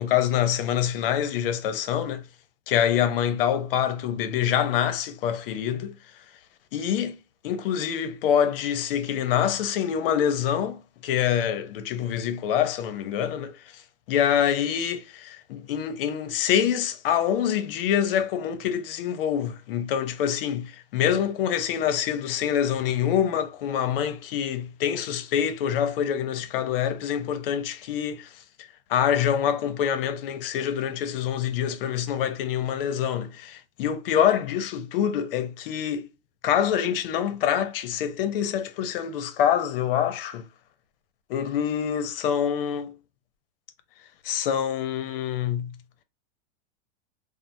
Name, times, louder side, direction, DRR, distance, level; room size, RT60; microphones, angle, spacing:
voice 1, 0.0-2.3 2.7-6.0 6.7-7.2 7.4-13.8 14.1-28.4 28.9-36.1 36.4-40.5 41.3-43.0 44.2-45.8, left 9 dB, 50° left, 0.5 m, -26 dB
3.1 x 2.0 x 2.5 m
supercardioid pair, 160°, 35 cm